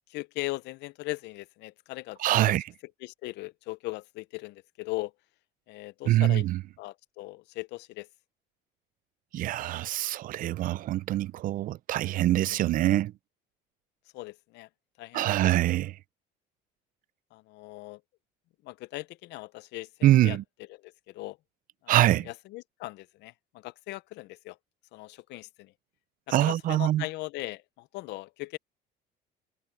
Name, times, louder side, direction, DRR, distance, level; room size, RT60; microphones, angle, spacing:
voice 1, 0.1-2.5 3.0-5.1 5.7-6.5 6.8-8.1 14.1-14.7 15.0-15.5 17.3-18.0 18.6-20.4 20.7-21.4 21.8-24.6 24.9-25.7 26.3-28.6, left 21 dB, 65° left, 0.6 m, -39 dB
voice 2, 2.2-2.6 6.1-6.6 9.3-13.1 15.1-15.9 20.0-20.4 21.9-22.3 26.3-27.0, right 14 dB, 50° right, 0.5 m, -24 dB
cardioid pair, 140°, 19 cm